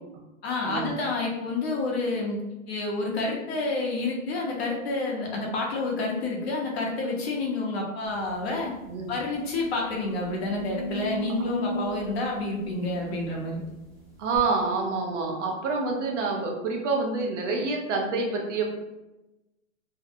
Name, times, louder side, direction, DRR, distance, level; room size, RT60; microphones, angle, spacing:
voice 1, 0.4-8.7 9.1-13.6, left 2 dB, 50° left, -1 dB, 0.7 m, -29 dB
sound 1, 8.3-8.4 8.8-8.9 9.5-13.7 14.3-14.4, equal, ahead, 0.8 m, -36 dB
voice 2, 14.2-18.7, right 3 dB, 60° right, 1 dB, 0.7 m, -27 dB
2.6 x 2.1 x 2.5 m, 1.0 s
hypercardioid pair, 160°, 42 cm